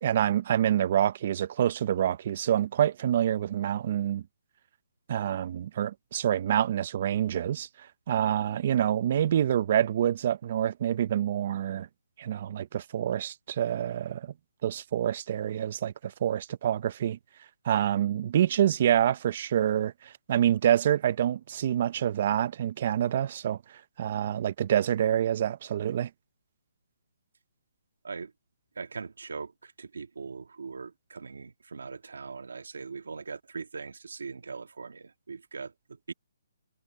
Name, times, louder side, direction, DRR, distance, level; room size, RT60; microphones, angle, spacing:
voice 1, 0.0-4.2 5.1-7.7 8.1-11.9 12.2-14.3 14.6-17.2 17.6-23.6 24.0-26.1, right 10 dB, 35° right, 0.6 m, -27 dB
voice 2, 28.7-36.1, right 5 dB, 90° right, 1.6 m, -41 dB
hypercardioid pair, 170°, 0 cm